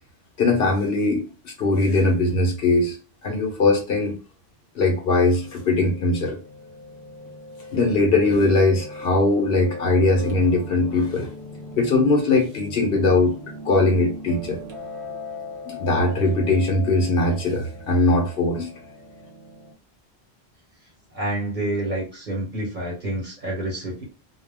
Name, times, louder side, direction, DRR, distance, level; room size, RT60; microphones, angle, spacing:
voice 1, 0.4-3.0 3.2-4.1 4.7-6.4 7.7-11.3 11.8-13.3 13.6-14.6 15.7-18.7, left 2 dB, 65° left, 2 dB, 0.9 m, -20 dB
Piano, 5.3-19.7, left 2 dB, 80° right, 1.1 m, -39 dB
voice 2, 21.1-24.1, right 1 dB, 50° right, -4 dB, 1.0 m, -28 dB
2.3 x 2.2 x 3.3 m, 0.32 s
omnidirectional pair, 1.1 m